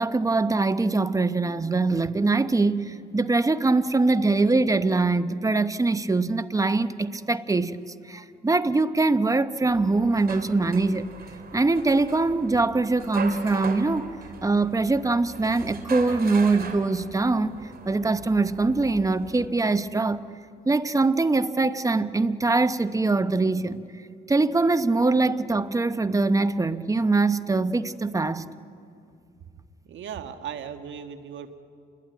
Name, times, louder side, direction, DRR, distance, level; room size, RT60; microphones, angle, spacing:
voice 1, 0.0-7.8 8.1-11.1 11.5-14.1 14.4-17.6 17.8-20.2 20.7-23.8 24.3-28.5, right 3 dB, 15° right, 0.9 m, -23 dB
sound 1, 9.7-19.5, right 5 dB, 50° right, 2.9 m, -40 dB
voice 2, 29.8-31.6, right 8 dB, 70° right, 1.7 m, -37 dB
28.0 x 21.0 x 9.6 m
cardioid pair, 90°, 20 cm